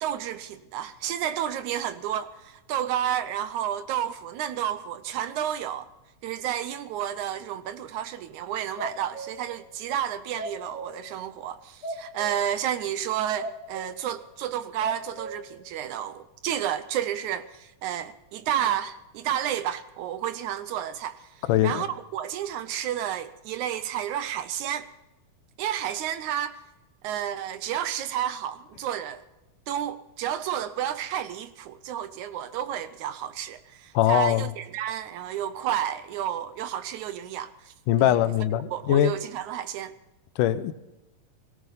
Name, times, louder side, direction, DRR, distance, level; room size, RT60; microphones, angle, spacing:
voice 1, 0.0-5.9 6.2-24.9 25.6-26.6 27.0-29.2 29.7-38.2 38.7-39.9, right 10 dB, 75° right, 2.0 m, -31 dB
sound 1, 8.8-9.5 10.4-11.0 11.8-12.5 13.0-13.1 13.4-14.1 14.5-15.3, right 1 dB, 10° left, 1.4 m, -37 dB
voice 2, 21.5-21.9 33.9-34.5 37.9-39.2 40.4-40.7, left 12 dB, 80° left, 2.2 m, -22 dB
18.5 x 17.5 x 4.1 m
omnidirectional pair, 3.8 m